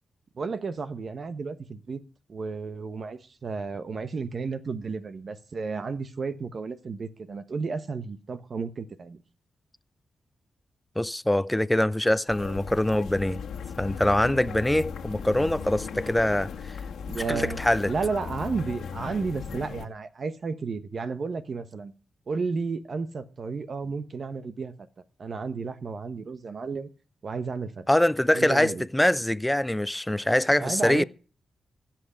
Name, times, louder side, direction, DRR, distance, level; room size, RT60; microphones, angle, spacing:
voice 1, 0.4-2.0 2.3-9.2 17.1-17.6 17.9-21.9 22.3-24.7 25.2-26.9 27.2-27.9 28.3-28.9 30.6-31.0, right 4 dB, 55° right, 1.2 m, -32 dB
voice 2, 11.0-13.4 13.8-16.5 17.3-17.9 27.9-31.0, left 1 dB, 10° left, 0.6 m, -24 dB
sound 1, 12.3-19.9, left 6 dB, 85° left, 1.6 m, -37 dB
16.0 x 6.0 x 8.4 m
cardioid pair, 60°, 0 cm